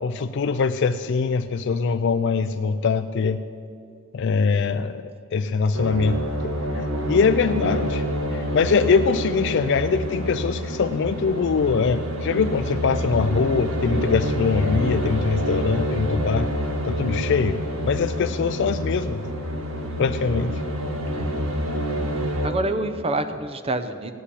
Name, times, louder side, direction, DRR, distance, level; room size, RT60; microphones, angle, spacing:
voice 1, 0.0-3.4 4.1-5.0 5.3-8.0 8.3-16.5 16.8-17.6 17.9-19.3 20.0-20.6, left 5 dB, 55° left, 8 dB, 0.4 m, -23 dB
sound 1, 5.7-22.5, equal, 70° right, 1.5 m, -27 dB
voice 2, 22.4-24.1, right 2 dB, 25° right, 10 dB, 0.6 m, -27 dB
16.0 x 5.7 x 9.9 m, 2.4 s
head